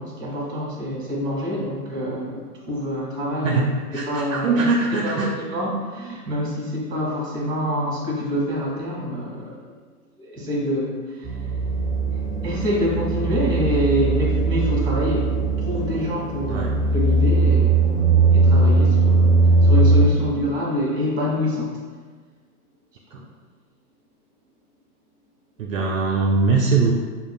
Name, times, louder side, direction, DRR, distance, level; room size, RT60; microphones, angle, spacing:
voice 1, 0.0-3.6 4.0-4.7 5.0-9.6 10.2-11.3 12.4-17.9 18.3-19.3 19.6-21.8 23.1-23.2, equal, 10° right, -4 dB, 1.4 m, -26 dB
voice 2, 3.4-5.3 16.5-16.7 23.1-23.2 25.6-27.0, right 4 dB, 60° right, 0 dB, 0.5 m, -21 dB
sound 1, 11.2-20.1, right 3 dB, 10° left, 1.2 m, -19 dB
6.3 x 2.4 x 2.2 m, 1.5 s
figure-of-eight pair, 125°, 46 cm